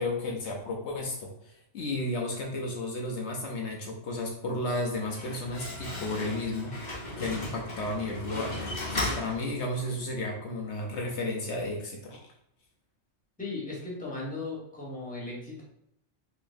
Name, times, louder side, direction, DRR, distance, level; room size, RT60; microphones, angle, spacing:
voice 1, 0.0-6.7 7.2-12.2, left 2 dB, 70° left, 0 dB, 0.9 m, -33 dB
Slam, 4.9-10.0, left 1 dB, 45° left, 0.9 m, -36 dB
voice 2, 13.4-15.6, left 3 dB, 5° left, -5 dB, 1.0 m, -37 dB
3.9 x 3.0 x 2.5 m, 0.77 s
omnidirectional pair, 1.2 m